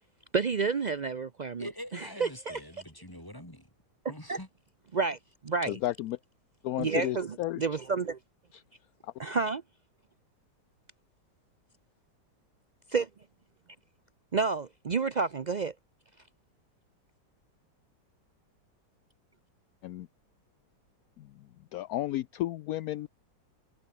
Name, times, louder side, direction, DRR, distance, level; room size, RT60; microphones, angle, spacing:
voice 1, 0.3-1.7 2.2-2.6 4.3-4.4 4.9-5.8 6.8-8.2 9.2-9.6 12.9-13.1 14.3-15.7, right 4 dB, 65° right, 0.4 m, -30 dB
voice 2, 1.6-3.7 4.1-4.5, left 1 dB, 10° left, 4.9 m, -44 dB
voice 3, 5.7-6.2 6.6-7.6 8.5-8.6 19.8-20.1 21.2-21.3 21.7-23.1, left 14 dB, 70° left, 0.9 m, -33 dB
omnidirectional pair, 1.9 m